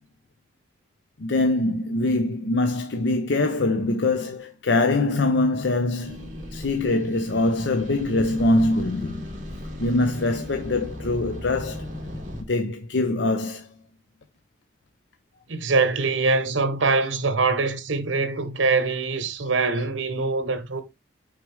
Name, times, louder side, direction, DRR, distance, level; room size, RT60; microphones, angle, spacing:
voice 1, 1.2-9.2 9.8-11.9 12.5-13.7 19.6-19.8, left 2 dB, 65° left, 0.6 m, -23 dB
sound 1, 6.0-12.4, left 1 dB, 40° right, 1.8 m, -36 dB
voice 2, 15.5-20.8, right 3 dB, 80° right, 1.0 m, -23 dB
6.1 x 5.0 x 3.3 m
head